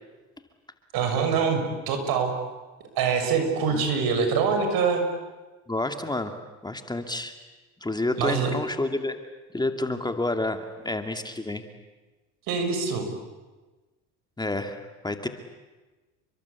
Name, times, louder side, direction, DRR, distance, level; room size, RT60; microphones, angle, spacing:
voice 1, 0.9-2.3 2.9-5.0 8.2-8.5 12.5-13.1, right 5 dB, 65° right, 7 dB, 6.6 m, -24 dB
voice 2, 5.7-6.3 6.6-7.3 7.8-9.2 9.5-11.6 14.4-15.3, left 2 dB, 10° left, 6 dB, 2.4 m, -29 dB
30.0 x 23.5 x 8.4 m, 1.2 s
supercardioid pair, 90°, 39 cm